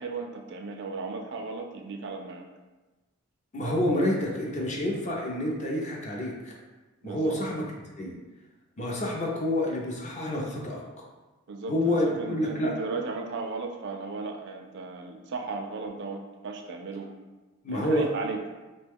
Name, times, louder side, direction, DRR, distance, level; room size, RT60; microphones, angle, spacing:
voice 1, 0.0-2.5 7.0-7.5 11.5-17.1 17.7-18.4, right 3 dB, 55° right, 3 dB, 0.4 m, -35 dB
voice 2, 3.5-6.5 7.0-7.6 8.0-8.1 8.8-10.8 11.7-12.7 17.6-18.0, left 1 dB, 35° left, -2 dB, 0.5 m, -28 dB
3.1 x 2.2 x 3.4 m, 1.2 s
head